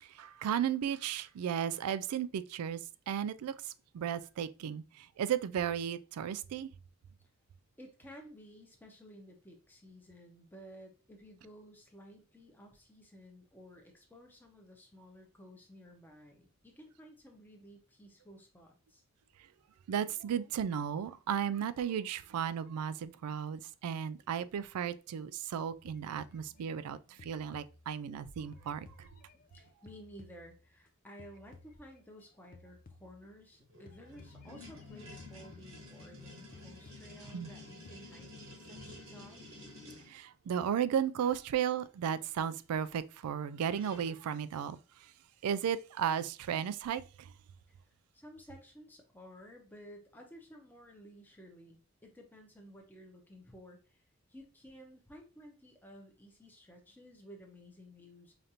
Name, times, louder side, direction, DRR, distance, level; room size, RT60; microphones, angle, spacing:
voice 1, 0.0-2.8 3.1-6.7 19.9-29.1 37.3-37.5 40.1-45.1 45.4-47.3, right 8 dB, 90° right, 0.3 m, -35 dB
voice 2, 7.8-19.0 29.3-39.4 47.7-58.3, equal, 10° left, 0.7 m, -54 dB
sound 1, 25.9-28.2 28.5-30.9 31.2-32.3 32.5-33.5 33.9-36.2 36.5-38.2, left 3 dB, 40° left, 0.4 m, -58 dB
sound 2, 33.6-40.1 43.3-43.4 43.6-44.2, left 2 dB, 60° right, 1.1 m, -51 dB
4.9 x 2.5 x 2.8 m
head